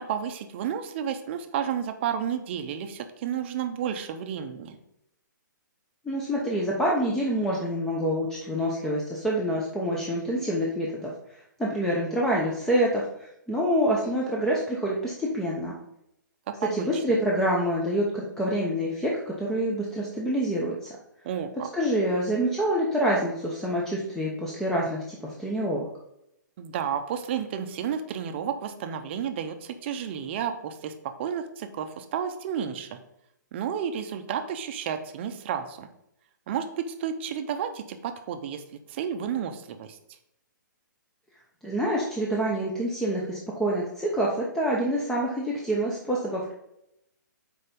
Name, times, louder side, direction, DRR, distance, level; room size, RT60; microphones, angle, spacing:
voice 1, 0.0-4.8 16.5-17.0 21.2-21.7 26.6-33.0 33.5-35.9 36.5-38.6 38.9-40.0, right 8 dB, 35° right, 8 dB, 0.7 m, -31 dB
voice 2, 6.0-11.1 11.6-15.8 16.7-20.9 21.7-25.9 41.6-46.5, equal, 5° left, -4 dB, 0.8 m, -27 dB
6.6 x 4.6 x 5.2 m, 0.80 s
hypercardioid pair, 155°, 11 cm